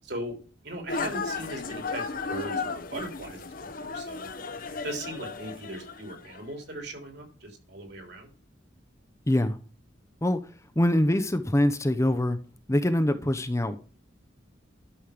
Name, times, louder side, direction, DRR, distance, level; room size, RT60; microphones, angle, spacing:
voice 1, 0.0-0.3 0.6-4.3 4.8-8.3, right 1 dB, 60° right, 4 dB, 3.4 m, -39 dB
sound 1, 0.9-6.4, left 4 dB, 45° left, 0.9 m, -35 dB
voice 2, 9.3-9.6 10.2-10.4 10.8-12.4 12.7-13.8, left 1 dB, 15° left, 9 dB, 0.7 m, -24 dB
12.0 x 6.3 x 5.1 m, 0.37 s
head